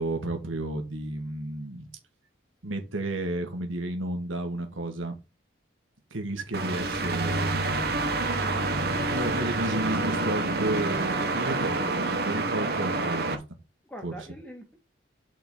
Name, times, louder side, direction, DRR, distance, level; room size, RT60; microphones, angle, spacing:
voice 1, 0.0-1.9 2.6-5.2 6.1-8.2 9.1-13.4 14.0-14.2, right 1 dB, 90° right, 1.8 m, -32 dB
sound 1, 6.5-13.4, right 2 dB, 50° right, 1.1 m, -28 dB
voice 2, 13.9-14.8, right 1 dB, 5° left, 1.9 m, -43 dB
5.8 x 4.3 x 5.4 m
head